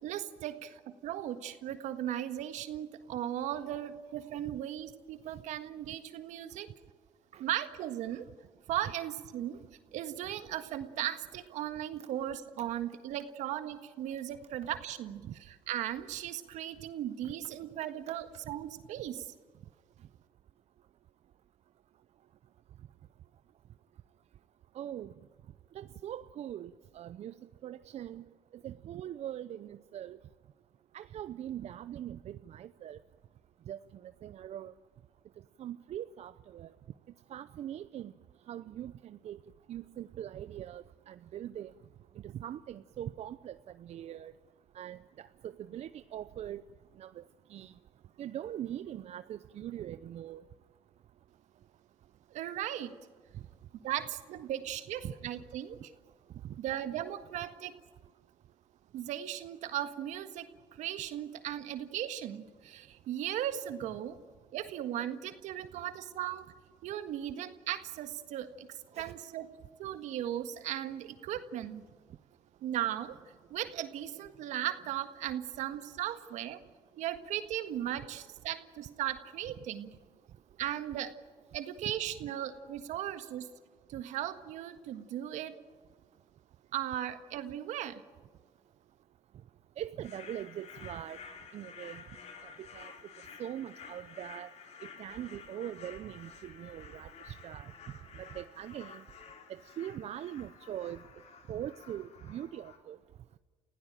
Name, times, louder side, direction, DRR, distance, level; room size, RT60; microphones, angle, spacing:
voice 1, 0.0-6.7 7.4-8.3 8.7-9.6 9.9-19.3 52.3-52.9 53.8-55.9 56.6-57.7 58.9-64.2 64.5-66.5 66.8-68.7 69.0-69.5 69.8-71.8 72.6-73.2 73.5-76.6 77.0-79.9 80.6-81.1 81.5-83.5 83.9-85.6 86.7-88.0, right 11 dB, 80° right, 9 dB, 1.6 m, -37 dB
voice 2, 24.8-25.1 25.8-27.3 27.6-28.2 28.6-30.2 30.9-33.0 33.7-33.8 34.2-34.7 35.6-36.7 37.3-38.1 38.5-39.4 39.7-41.7 42.3-43.5 43.8-44.3 44.8-45.0 45.4-46.6 47.0-47.2 47.5-47.7 48.2-50.4 55.0-55.1 56.4-56.5 69.0-69.1 89.8-91.2 91.5-92.0 92.7-92.9 93.4-94.5 95.0-97.7 98.3-99.0 99.8-101.0 101.5-103.0, right 11 dB, 60° right, 13 dB, 0.7 m, -41 dB
sound 1, 90.0-102.8, left 6 dB, 60° left, 3.1 m, -51 dB
29.5 x 16.5 x 9.0 m, 1.5 s
supercardioid pair, 65°, 12 cm